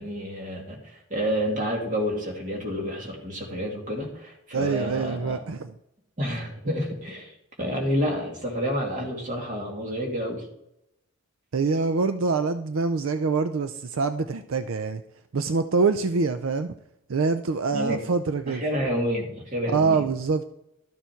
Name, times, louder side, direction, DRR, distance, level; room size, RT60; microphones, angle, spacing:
voice 1, 0.0-5.4 6.2-10.5 17.7-18.1 18.5-20.1, equal, 40° right, 0 dB, 2.4 m, -29 dB
voice 2, 4.5-5.7 11.5-15.0 15.3-16.7 17.1-18.6 19.7-20.5, right 4 dB, 75° right, 9 dB, 0.5 m, -25 dB
12.5 x 7.0 x 4.5 m, 0.82 s
head